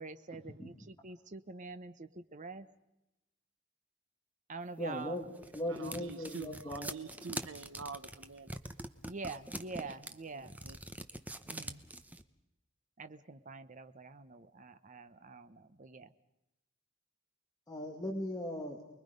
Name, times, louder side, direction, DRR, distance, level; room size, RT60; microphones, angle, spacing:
voice 1, 0.0-2.7 4.5-5.2 9.1-10.6 11.5-11.8 13.0-16.1, right 3 dB, 40° right, 0.9 m, -46 dB
voice 2, 4.8-6.9 17.7-18.8, left 1 dB, 20° left, 2.4 m, -38 dB
sound 1, 5.0-12.2, right 1 dB, 10° right, 0.8 m, -44 dB
voice 3, 5.7-8.6 10.3-10.8, right 5 dB, 70° right, 1.0 m, -46 dB
29.0 x 21.5 x 5.3 m
head